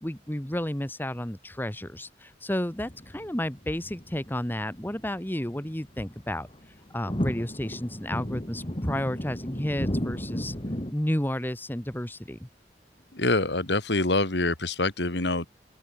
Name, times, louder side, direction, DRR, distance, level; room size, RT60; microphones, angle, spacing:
voice 1, 0.0-6.5 6.9-10.5 10.9-12.5, left 1 dB, 10° left, 1.5 m, -31 dB
sound 1, 2.9-5.1 5.5-10.9, equal, 30° left, 3.4 m, -34 dB
voice 2, 13.1-15.5, left 2 dB, 70° left, 2.7 m, -25 dB
open air
head